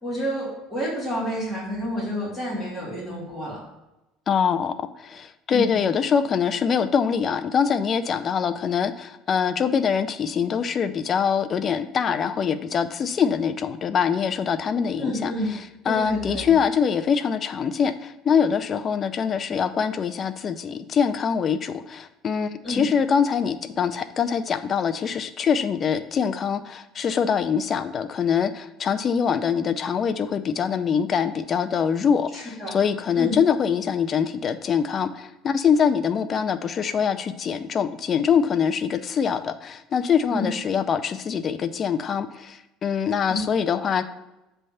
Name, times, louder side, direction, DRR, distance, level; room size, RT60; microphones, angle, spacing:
voice 1, 0.0-3.6 5.5-5.8 15.0-15.5 15.8-16.5 22.6-22.8 32.3-32.7 33.1-33.3 40.3-40.5 43.3-43.4, equal, ahead, -8 dB, 2.6 m, -29 dB
voice 2, 4.3-15.6 15.9-44.0, left 7 dB, 35° left, 10 dB, 0.4 m, -24 dB
7.4 x 3.4 x 5.5 m, 0.97 s
cardioid pair, 135°, 0 cm